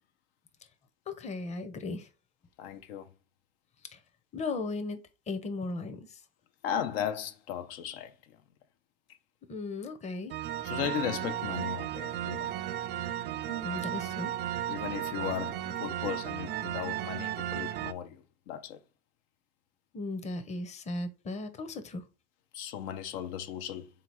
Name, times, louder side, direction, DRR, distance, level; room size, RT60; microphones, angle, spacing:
voice 1, 1.1-2.1 3.9-4.0 4.3-5.0 5.3-6.2 9.5-10.4 13.5-14.3 19.9-22.1, left 2 dB, 25° left, 0.7 m, -36 dB
voice 2, 2.6-3.1 6.6-8.4 10.6-12.5 14.7-18.8 22.5-23.9, left 9 dB, 85° left, 0.6 m, -36 dB
sound 1, 10.3-17.9, right 11 dB, 40° right, 0.4 m, -35 dB
3.7 x 2.8 x 4.7 m
supercardioid pair, 120°, 29 cm